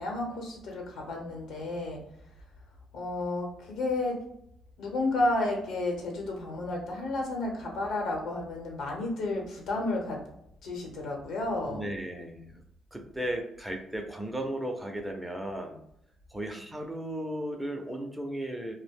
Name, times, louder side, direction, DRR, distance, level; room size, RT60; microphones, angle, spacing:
voice 1, 0.0-2.0 2.9-4.2 4.8-10.2 10.6-11.8, left 2 dB, 80° left, 1 dB, 0.9 m, -31 dB
voice 2, 11.7-12.6 12.9-15.8 16.3-18.7, right 1 dB, 10° right, 3 dB, 0.5 m, -35 dB
2.3 x 2.0 x 3.4 m, 0.77 s
cardioid pair, 90°, 0 cm